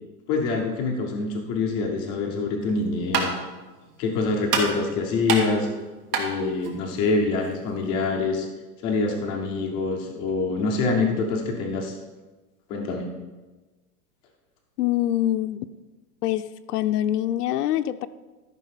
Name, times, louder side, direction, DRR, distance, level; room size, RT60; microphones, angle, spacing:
voice 1, 0.3-3.4 4.0-5.7 6.1-8.5 8.8-12.0 12.7-13.0, left 3 dB, 10° left, 2 dB, 0.4 m, -25 dB
sound 1, 2.6-7.9, right 5 dB, 85° right, 2.4 m, -30 dB
voice 2, 14.8-15.7 16.2-18.1, left 13 dB, 80° left, 9 dB, 0.6 m, -24 dB
13.0 x 5.4 x 5.7 m, 1.2 s
supercardioid pair, 155°, 46 cm